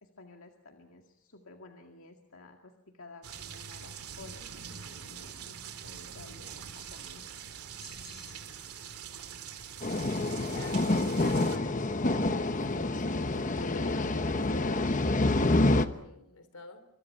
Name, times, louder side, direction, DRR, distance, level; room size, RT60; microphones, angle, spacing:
voice 1, 0.0-4.4 4.7-7.3, left 3 dB, 70° left, 2 dB, 2.1 m, -53 dB
sound 1, 3.2-11.6, right 7 dB, 85° right, 2.6 m, -44 dB
sound 2, 7.8-8.8, left 3 dB, 15° left, 6.7 m, -53 dB
sound 3, 9.8-15.9, left 2 dB, 35° left, 1.0 m, -27 dB
voice 2, 10.3-12.3 12.5-16.9, left 2 dB, 85° left, 11 dB, 3.4 m, -48 dB
28.0 x 24.5 x 5.7 m, 0.78 s
head